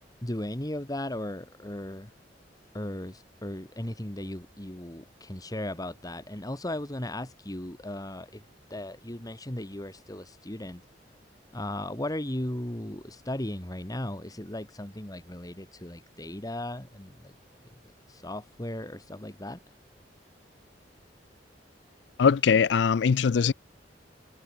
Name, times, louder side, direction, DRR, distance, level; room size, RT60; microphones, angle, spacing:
voice 1, 0.2-2.1 2.7-8.4 8.7-10.8 11.5-17.3 18.1-19.6, left 1 dB, 20° left, 1.8 m, -36 dB
voice 2, 22.2-23.5, left 6 dB, 70° left, 0.4 m, -21 dB
head